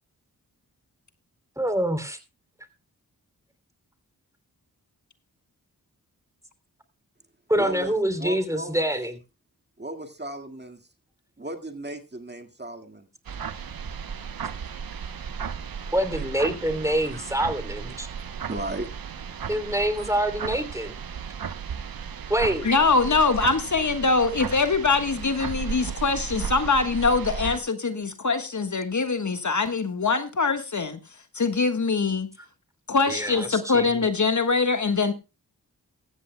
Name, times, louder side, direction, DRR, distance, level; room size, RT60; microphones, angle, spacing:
voice 1, 1.6-2.2 7.5-9.1 15.9-18.1 19.5-20.9 22.3-22.7 33.1-34.0, right 1 dB, 10° right, 9 dB, 3.0 m, -26 dB
voice 2, 7.5-8.9 9.8-10.8 11.4-13.1 16.1-16.2 16.9-17.3 18.0-18.1 18.5-18.9 20.0-20.1, right 1 dB, 25° right, 5 dB, 1.9 m, -36 dB
sound 1, 13.3-27.6, right 7 dB, 70° right, 0.9 m, -35 dB
voice 3, 22.6-31.0 31.3-32.3 32.9-35.1, left 4 dB, 50° left, 8 dB, 1.5 m, -23 dB
16.0 x 14.0 x 2.2 m, 0.29 s
cardioid pair, 40°, 37 cm